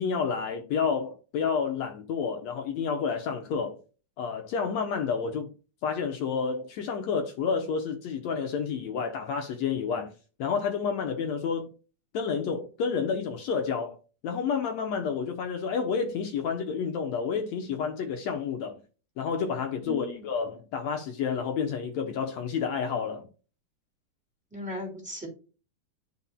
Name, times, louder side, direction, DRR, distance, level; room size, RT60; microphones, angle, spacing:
voice 1, 0.0-3.8 4.2-5.5 5.8-10.1 10.4-11.7 12.1-14.0 14.2-18.8 19.2-23.3, left 6 dB, 70° left, 1.7 m, -30 dB
voice 2, 19.8-20.2 24.5-25.3, left 1 dB, ahead, 2.1 m, -37 dB
11.5 x 4.2 x 2.2 m
omnidirectional pair, 4.0 m